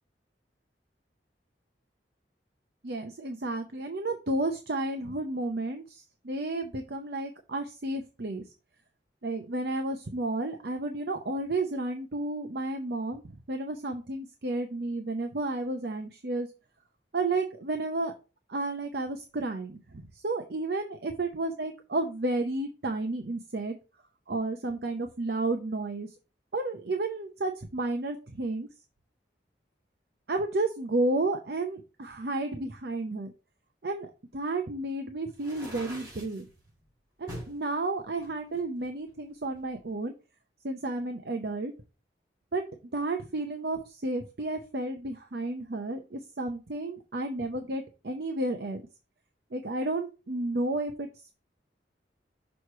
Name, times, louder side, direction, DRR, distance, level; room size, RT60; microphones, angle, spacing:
voice 1, 2.8-8.4 9.2-16.5 17.1-18.1 18.5-23.8 24.3-26.1 26.5-28.7 30.3-33.3 33.8-34.1 34.3-36.4 37.2-40.1 40.6-41.7 42.5-42.6 42.9-48.8 49.5-51.3, right 2 dB, 65° right, 5 dB, 0.7 m, -32 dB
sound 1, 35.3-36.4 37.3-37.6 38.2-39.3, equal, 20° right, 3.2 m, -43 dB
6.4 x 3.1 x 5.6 m, 0.32 s
head